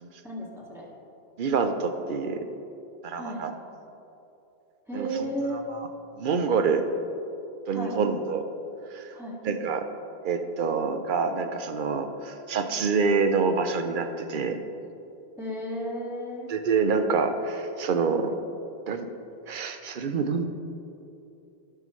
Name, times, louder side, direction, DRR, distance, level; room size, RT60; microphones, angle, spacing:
voice 1, 0.2-0.9 3.1-3.4 4.9-5.6 7.7-8.0 9.1-9.4 15.4-16.5, right 1 dB, ahead, -6 dB, 1.9 m, -33 dB
voice 2, 1.4-2.4 3.0-3.5 4.9-5.3 5.7-5.9 6.1-6.9 7.7-8.5 8.9-9.1 9.4-9.8 10.2-14.6 16.5-18.3 18.9-19.1 19.5-20.5, right 5 dB, 55° right, 7 dB, 0.7 m, -26 dB
17.0 x 5.7 x 3.1 m, 2.8 s
omnidirectional pair, 1.2 m